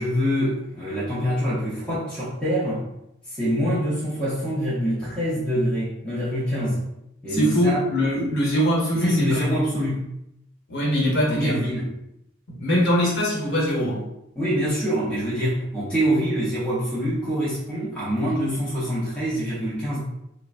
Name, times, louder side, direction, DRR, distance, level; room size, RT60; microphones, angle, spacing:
voice 1, 0.0-2.8 3.3-6.8 7.2-7.8 8.9-10.0 11.3-11.9 14.4-20.0, equal, 5° left, -10 dB, 0.6 m, -25 dB
voice 2, 7.3-9.4 10.7-11.7 12.6-14.0, equal, 60° left, -4 dB, 1.0 m, -22 dB
3.3 x 2.0 x 2.4 m, 0.83 s
head